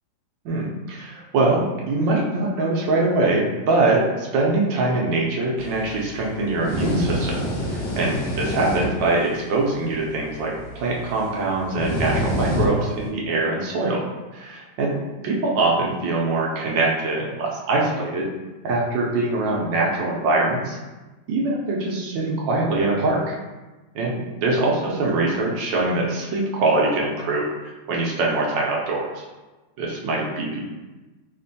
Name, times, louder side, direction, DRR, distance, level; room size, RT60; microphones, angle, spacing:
voice 1, 0.4-7.4 7.7-14.0 14.3-14.9 15.2-18.3 18.6-20.8 21.3-23.4 23.9-27.5 27.9-29.2 29.8-30.6, right 2 dB, 75° right, -2 dB, 1.3 m, -23 dB
sound 1, 5.6-13.1, left 1 dB, 70° left, 1.5 m, -29 dB
4.3 x 2.4 x 2.6 m, 1.2 s
omnidirectional pair, 2.2 m